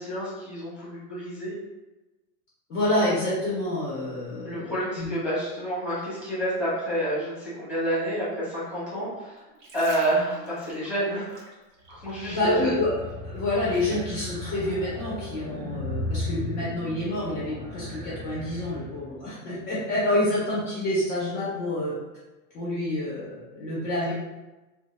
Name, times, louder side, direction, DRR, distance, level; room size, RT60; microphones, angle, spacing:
voice 1, 0.0-1.5 4.4-9.4 9.7-11.4 11.9-12.7, right 1 dB, 5° right, -9 dB, 0.8 m, -29 dB
voice 2, 2.7-5.1 12.3-13.0 13.2-21.9 22.5-24.1, left 1 dB, 15° left, -8 dB, 0.3 m, -28 dB
sound 1, 9.4-12.4 12.7-14.1 14.7-14.9, right 2 dB, 50° right, 0.8 m, -44 dB
sound 2, 11.9-19.3, left 2 dB, 80° right, 1.3 m, -36 dB
2.6 x 2.3 x 3.1 m, 1.1 s
supercardioid pair, 165°, 48 cm